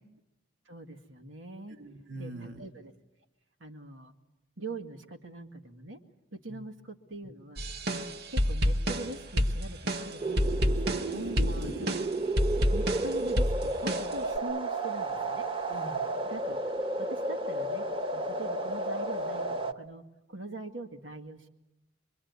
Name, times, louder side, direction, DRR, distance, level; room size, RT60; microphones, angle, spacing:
voice 1, 0.7-1.8 2.2-2.9 3.6-4.1 4.6-6.0 6.3-7.6 7.9-11.0 11.8-11.9 12.7-15.5 16.3-16.7 17.0-17.9 18.1-21.5, right 2 dB, 90° right, 3 dB, 2.0 m, -43 dB
voice 2, 1.7-2.6 6.5-6.6 11.1-11.8 15.7-16.1, right 1 dB, 70° right, 4 dB, 1.9 m, -42 dB
sound 1, 7.6-14.4, equal, 55° right, 1.2 m, -29 dB
sound 2, 10.2-19.7, right 2 dB, 30° right, 1.2 m, -32 dB
24.5 x 23.5 x 9.6 m, 0.97 s
head